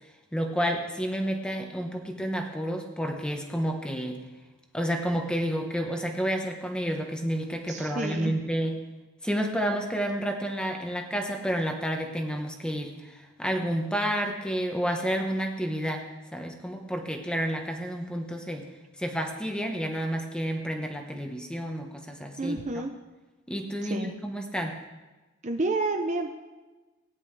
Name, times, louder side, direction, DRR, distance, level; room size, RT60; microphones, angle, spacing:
voice 1, 0.3-4.2 4.7-8.7 9.2-16.0 16.3-18.7 19.0-22.6 23.5-24.8, equal, 5° left, 3 dB, 1.0 m, -30 dB
voice 2, 7.7-8.4 22.4-22.9 23.9-24.1 25.4-26.3, right 2 dB, 35° right, 4 dB, 0.7 m, -29 dB
17.5 x 10.0 x 3.3 m, 1.2 s
head